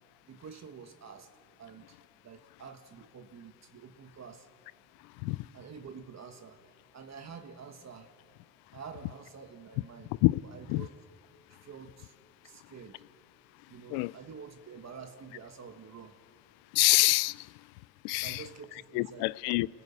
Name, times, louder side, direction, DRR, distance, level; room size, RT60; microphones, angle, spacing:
voice 1, 0.3-1.3 1.6-4.5 5.5-6.6 6.9-8.1 8.7-10.1 10.4-10.9 11.6-12.2 12.4-13.0 13.7-16.2 18.1-19.3, right 6 dB, 45° right, 1.5 m, -48 dB
voice 2, 16.7-17.5 18.0-18.4 18.9-19.7, left 23 dB, 85° left, 0.5 m, -26 dB
29.0 x 15.0 x 8.7 m
supercardioid pair, 70°, 37 cm